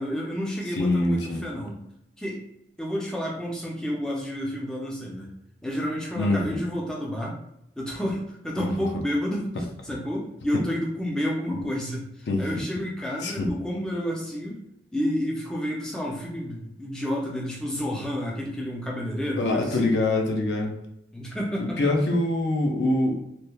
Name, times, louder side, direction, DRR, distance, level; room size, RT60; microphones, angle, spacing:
voice 1, 0.0-1.8 2.2-2.4 2.8-5.3 5.6-7.4 7.8-9.5 9.8-14.6 14.9-20.0 21.1-21.9, equal, 5° left, -3 dB, 0.3 m, -30 dB
voice 2, 0.8-1.5 6.2-6.4 8.5-8.7 12.3-12.4 13.2-13.5 19.4-20.7 21.6-23.2, left 2 dB, 80° left, 2 dB, 0.4 m, -24 dB
2.9 x 2.1 x 2.2 m, 0.81 s
head